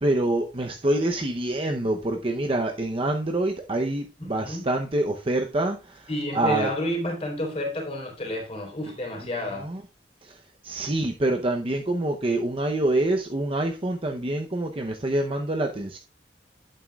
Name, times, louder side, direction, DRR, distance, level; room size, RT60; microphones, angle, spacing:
voice 1, 0.0-6.7 9.5-9.8 10.2-16.0, right 1 dB, 30° right, 0.7 m, -26 dB
voice 2, 4.2-4.7 6.1-9.7, left 1 dB, 35° left, 4.0 m, -30 dB
11.0 x 9.3 x 2.4 m
head